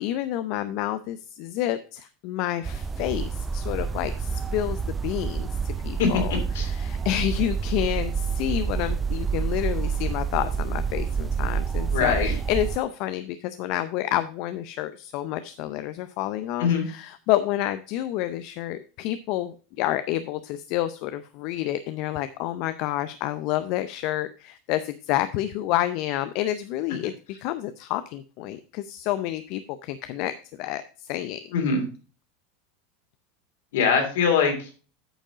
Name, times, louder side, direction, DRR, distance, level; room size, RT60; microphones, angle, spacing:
voice 1, 0.0-27.1 27.4-31.4, left 13 dB, 60° left, 12 dB, 0.5 m, -29 dB
sound 1, 2.6-12.8, right 6 dB, 20° right, 0.4 m, -28 dB
voice 2, 11.9-12.3 16.6-16.8 31.5-31.8 33.7-34.7, left 6 dB, 75° left, 4 dB, 2.8 m, -22 dB
8.9 x 5.2 x 4.9 m, 0.36 s
hypercardioid pair, 110°, 0 cm